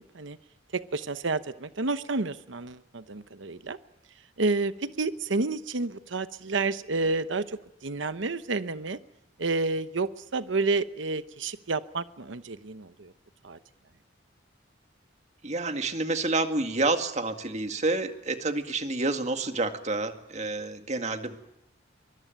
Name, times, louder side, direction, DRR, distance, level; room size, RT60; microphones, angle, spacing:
voice 1, 0.7-3.8 4.4-9.0 9.4-13.1 13.4-13.6, right 3 dB, 80° right, 12 dB, 0.9 m, -30 dB
voice 2, 15.4-21.4, right 2 dB, 35° right, 7 dB, 2.0 m, -29 dB
23.5 x 22.0 x 9.2 m, 0.82 s
head